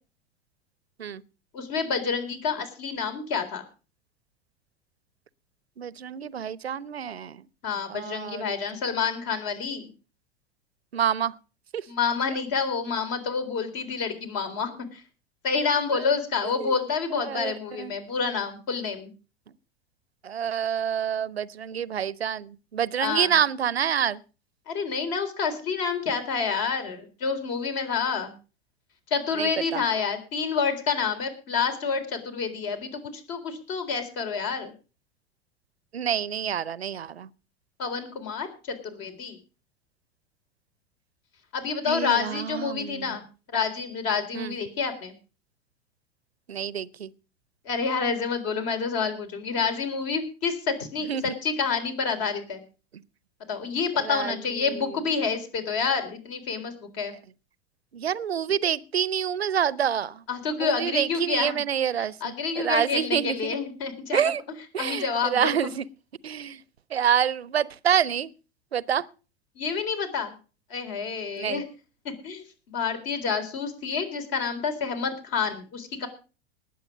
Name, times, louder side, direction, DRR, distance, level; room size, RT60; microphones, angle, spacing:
voice 1, 1.5-3.6 7.6-9.8 11.9-15.0 15.4-19.1 23.0-23.4 24.7-28.3 29.1-34.7 37.8-39.4 41.5-43.2 43.5-45.1 47.7-52.6 53.5-57.2 60.3-61.6 62.0-64.3 64.8-65.5 69.6-70.3 70.7-71.7 72.0-76.1, left 5 dB, 50° left, 3.8 m, -28 dB
voice 2, 5.8-7.4 7.9-8.5 10.9-11.3 11.7-11.8 16.6-16.7 17.1-17.9 20.2-24.2 29.4-29.8 35.9-37.3 41.9-43.1 44.3-44.5 46.5-47.1 51.1-51.4 54.1-54.4 54.7-54.9 57.9-60.2 60.6-63.6 64.1-64.4 64.7-65.9 66.2-66.6 66.9-68.3 68.7-69.1 71.4-71.6, right 8 dB, 85° right, 0.7 m, -27 dB
19.5 x 7.9 x 5.1 m
hypercardioid pair, 90°, 30 cm